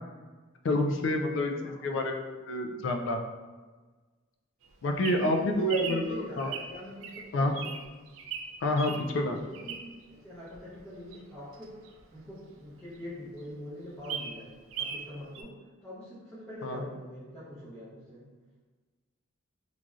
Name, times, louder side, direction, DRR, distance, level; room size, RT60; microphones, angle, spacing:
voice 1, 0.6-3.2 4.8-6.5 7.3-7.6 8.6-9.4 16.6-16.8, left 1 dB, 65° left, 4 dB, 0.3 m, -28 dB
voice 2, 1.6-2.0 5.2-7.8 9.3-11.8 12.1-15.6 15.8-18.2, equal, 5° left, -12 dB, 0.6 m, -44 dB
Bird vocalization bird call bird song, 4.6-10.1 10.5-12.7 13.1-13.2 13.4-13.5 13.8-15.1 15.3-15.4, right 6 dB, 75° right, 0.3 m, -39 dB
3.1 x 2.5 x 2.4 m, 1.3 s
head